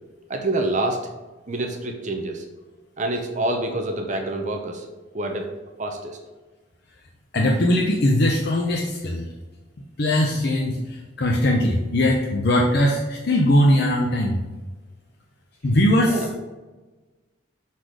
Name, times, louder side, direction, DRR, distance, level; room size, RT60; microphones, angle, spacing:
voice 1, 0.3-1.0 1.5-2.5 3.0-4.9 5.1-5.5 5.8-6.2 16.0-16.4, right 2 dB, 40° right, 3 dB, 0.7 m, -27 dB
voice 2, 7.3-9.2 10.0-14.4 15.6-16.2, left 1 dB, 55° left, 1 dB, 0.7 m, -20 dB
6.3 x 4.1 x 5.0 m, 1.2 s
head